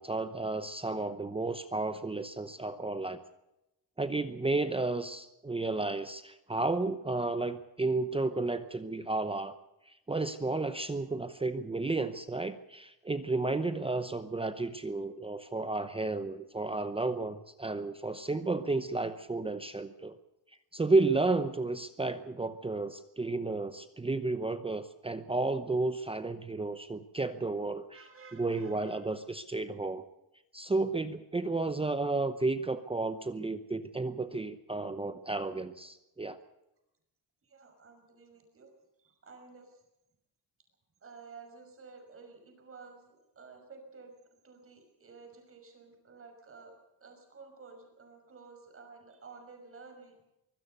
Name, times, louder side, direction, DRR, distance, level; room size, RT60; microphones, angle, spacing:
voice 1, 0.0-3.2 4.0-9.5 9.9-20.2 20.7-27.8 28.3-30.0 30.5-36.4, right 3 dB, 15° right, 10 dB, 0.8 m, -32 dB
voice 2, 27.9-29.1 37.4-38.7 39.0-39.8 41.0-44.2 44.4-50.2, right 4 dB, 35° right, 5 dB, 5.8 m, -52 dB
24.0 x 16.5 x 6.8 m, 0.89 s
wide cardioid pair, 175°, 39 cm